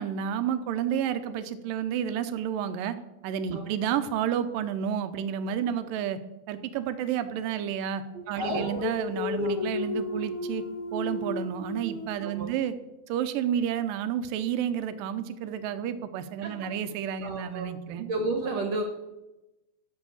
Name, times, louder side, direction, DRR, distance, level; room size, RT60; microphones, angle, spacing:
voice 1, 0.0-3.0 3.2-6.2 6.5-10.6 10.9-12.7 13.1-18.0, right 9 dB, 75° right, 10 dB, 2.3 m, -30 dB
Dog, 8.4-12.1, left 3 dB, 55° left, 1.6 m, -32 dB
voice 2, 8.4-8.7 9.4-9.5 12.2-12.5 16.4-16.7 17.2-17.7 18.0-18.8, right 3 dB, 55° right, 3 dB, 2.1 m, -32 dB
12.5 x 6.4 x 7.1 m, 0.99 s
omnidirectional pair, 4.3 m